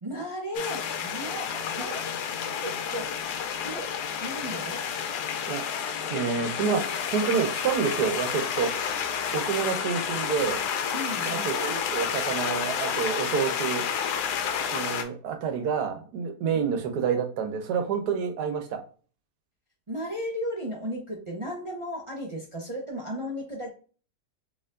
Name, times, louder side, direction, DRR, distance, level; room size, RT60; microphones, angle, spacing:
voice 1, 0.0-2.2 2.6-3.2 3.6-3.9 4.2-4.8 10.9-11.5 16.5-16.6 19.9-23.7, equal, 40° right, -2 dB, 0.4 m, -35 dB
sound 1, 0.5-15.0, left 7 dB, 90° left, 1.2 m, -30 dB
voice 2, 6.1-8.7 9.3-10.6 11.2-13.8 14.7-18.8, right 6 dB, 85° right, 6 dB, 1.3 m, -28 dB
4.4 x 3.2 x 2.5 m, 0.39 s
omnidirectional pair, 1.7 m